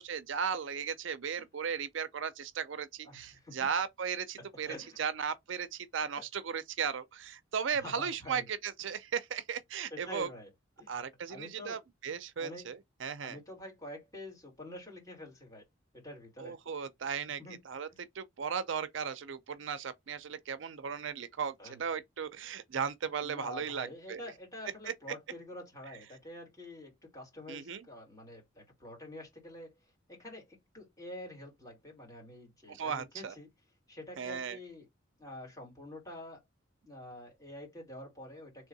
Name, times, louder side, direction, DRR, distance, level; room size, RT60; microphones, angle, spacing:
voice 1, 0.0-10.3 10.9-12.8 13.0-13.4 16.4-17.4 17.7-17.9 18.2-24.2 27.5-27.8 32.7-33.3 34.2-34.6, right 6 dB, 65° right, 0.5 m, -36 dB
voice 2, 3.0-3.7 4.6-5.0 6.1-6.2 7.7-8.5 9.9-10.5 10.8-10.9 11.3-11.8 12.4-12.8 13.2-15.6 15.9-16.6 17.4-17.6 17.9-18.0 21.6-21.9 23.2-29.7 30.1-33.5 33.9-34.9 35.2-36.4 36.8-38.7, left 1 dB, 15° left, 2.6 m, -47 dB
3.5 x 3.4 x 4.0 m
head